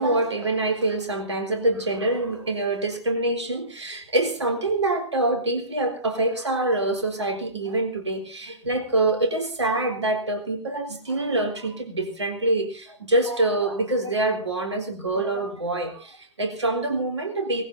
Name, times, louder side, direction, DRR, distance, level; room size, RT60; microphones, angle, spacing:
voice 1, 0.0-17.6, right 2 dB, 80° right, 5 dB, 3.8 m, -25 dB
19.0 x 15.5 x 4.2 m, 0.36 s
figure-of-eight pair, 90°, 14 cm